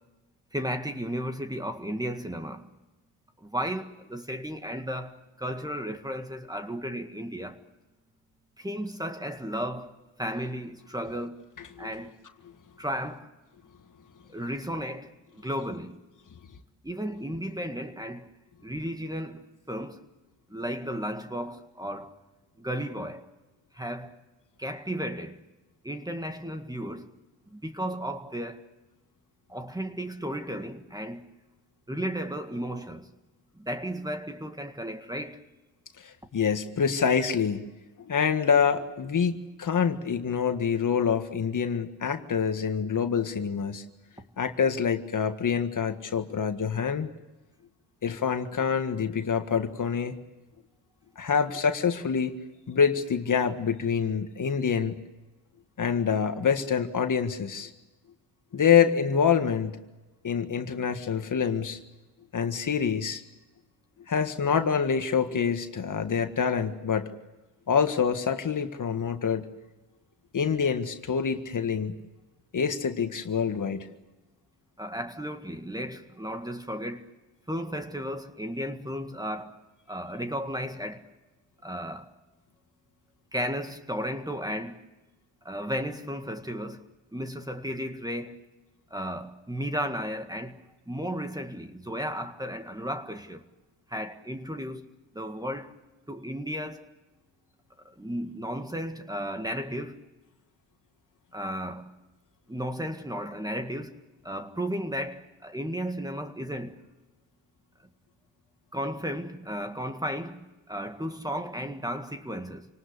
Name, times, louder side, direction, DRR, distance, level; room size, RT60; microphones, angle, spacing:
voice 1, 0.5-2.7 3.4-7.6 8.6-9.9 10.2-11.5 11.8-12.1 12.8-13.3 14.3-16.0 16.8-18.3 18.6-20.0 20.5-22.2 22.6-23.3 23.7-24.2 24.6-25.4 25.8-27.1 27.5-28.7 29.5-31.3 31.9-33.1 33.6-35.4 74.8-77.1 77.5-79.6 79.9-81.1 81.6-82.1 83.3-84.8 85.4-86.8 87.1-88.4 88.9-90.6 90.9-93.4 93.9-94.9 95.1-95.8 96.1-96.9 97.8-100.0 101.3-101.9 102.5-106.8 108.7-112.7, equal, 10° right, 1.8 m, -34 dB
voice 2, 36.0-37.7 38.1-43.8 44.4-47.1 48.0-50.1 51.2-52.3 52.7-55.0 55.8-57.7 58.5-59.8 60.2-61.8 62.3-63.2 64.1-67.1 67.7-69.5 70.3-72.0 72.5-73.9, left 7 dB, 40° left, 1.8 m, -26 dB
27.5 x 19.0 x 8.4 m
cardioid pair, 90°, 45 cm